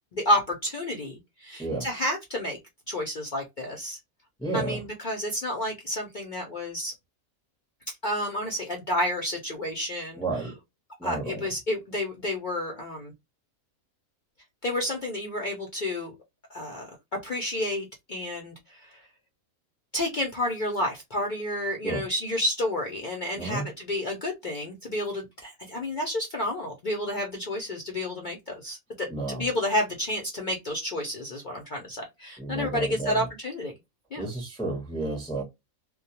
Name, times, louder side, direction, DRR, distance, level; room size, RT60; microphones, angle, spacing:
voice 1, 0.1-2.6 2.9-4.0 4.5-6.9 8.0-10.2 11.0-13.1 14.6-16.1 16.5-16.9 17.2-19.0 19.9-33.7 34.1-34.3, left 1 dB, 60° left, 0.5 m, -30 dB
voice 2, 4.4-4.8 10.1-10.5 11.0-11.5 21.8-22.1 23.4-23.7 29.1-29.5 32.4-33.3 34.2-35.4, right 2 dB, 5° left, 0.5 m, -31 dB
2.2 x 2.2 x 2.7 m
omnidirectional pair, 1.5 m